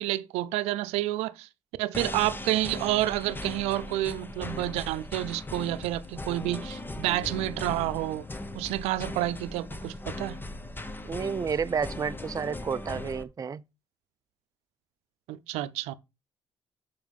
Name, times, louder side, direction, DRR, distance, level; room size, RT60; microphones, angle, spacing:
voice 1, 0.0-1.5 1.8-8.2 8.5-10.4 15.3-15.9, right 15 dB, 80° right, 0.6 m, -29 dB
battle-march action loop, 1.9-13.2, left 2 dB, 20° left, 1.1 m, -39 dB
voice 2, 11.0-13.6, right 6 dB, 35° right, 0.5 m, -31 dB
7.2 x 5.1 x 5.4 m
supercardioid pair, 60°, 11 cm